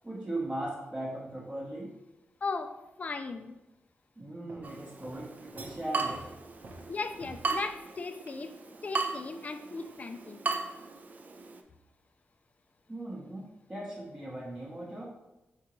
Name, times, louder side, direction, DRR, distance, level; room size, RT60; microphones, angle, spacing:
voice 1, 0.0-1.9 4.2-6.2 12.9-15.1, right 1 dB, 20° right, -6 dB, 0.8 m, -38 dB
voice 2, 2.4-3.6 6.9-8.5 8.8-10.4, left 4 dB, 40° left, 8 dB, 0.3 m, -37 dB
Walk footsteps, 4.5-7.8, right 2 dB, 65° right, 0.8 m, -51 dB
Water tap faucet / Drip, 4.6-11.6, right 4 dB, 45° right, 0.4 m, -37 dB
4.8 x 3.6 x 3.0 m, 0.97 s
wide cardioid pair, 130°, 4 cm